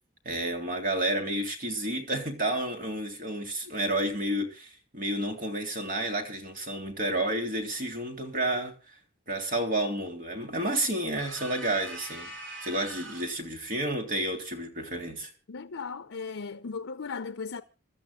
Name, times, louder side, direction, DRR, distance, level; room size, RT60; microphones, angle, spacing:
voice 1, 0.2-8.7 9.3-12.3 12.6-15.3, right 1 dB, 45° right, 3.4 m, -30 dB
sound 1, 11.2-13.4, right 2 dB, 70° right, 5.0 m, -42 dB
voice 2, 15.5-17.6, left 5 dB, 80° left, 0.7 m, -37 dB
26.5 x 13.0 x 2.3 m
head